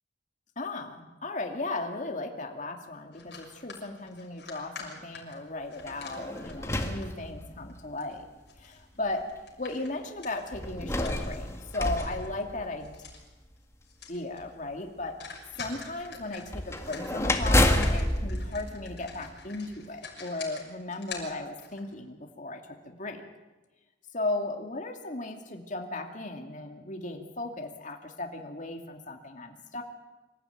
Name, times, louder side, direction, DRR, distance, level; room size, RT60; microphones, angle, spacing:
voice 1, 0.6-8.2 8.6-8.7 9.0-9.3 9.6-11.5 11.7-12.9 14.1-15.2 15.6-23.2 24.1-29.8, left 2 dB, 45° left, 3 dB, 2.5 m, -36 dB
sound 1, 3.1-7.3 7.7-12.3 12.6-13.3 13.6-13.7 13.8-14.4 14.7-14.8 15.2-21.9, left 5 dB, 65° left, 6.2 m, -46 dB
sound 2, 5.8-7.8 8.6-8.7 10.5-13.1 16.5-19.6, left 1 dB, 15° left, 1.9 m, -29 dB
26.0 x 15.0 x 9.3 m, 1.1 s
head